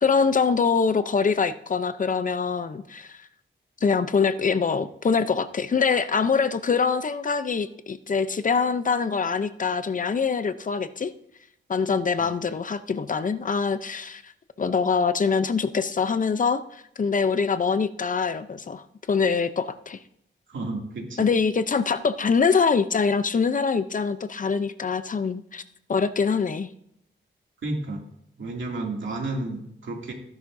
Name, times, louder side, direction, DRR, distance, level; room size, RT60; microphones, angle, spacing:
voice 1, 0.0-3.2 3.8-11.1 11.7-14.3 14.6-20.0 21.2-25.6 25.9-26.7, left 5 dB, 40° left, 12 dB, 0.6 m, -24 dB
voice 2, 20.5-21.3 27.6-28.0 28.4-30.1, right 2 dB, 75° right, 0 dB, 2.6 m, -31 dB
15.5 x 10.5 x 2.7 m, 0.75 s
wide cardioid pair, 100°, 20 cm